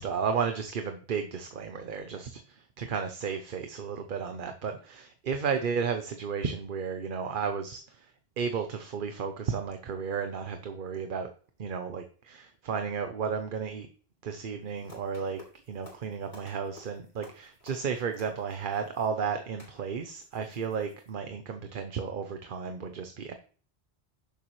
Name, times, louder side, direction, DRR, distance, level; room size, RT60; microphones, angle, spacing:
voice 1, 0.0-11.3 11.6-13.9 14.2-23.3, right 6 dB, 55° right, 6 dB, 0.9 m, -33 dB
sound 1, 14.6-21.1, left 1 dB, 80° left, 3.7 m, -55 dB
10.0 x 7.0 x 3.1 m, 0.43 s
omnidirectional pair, 1.0 m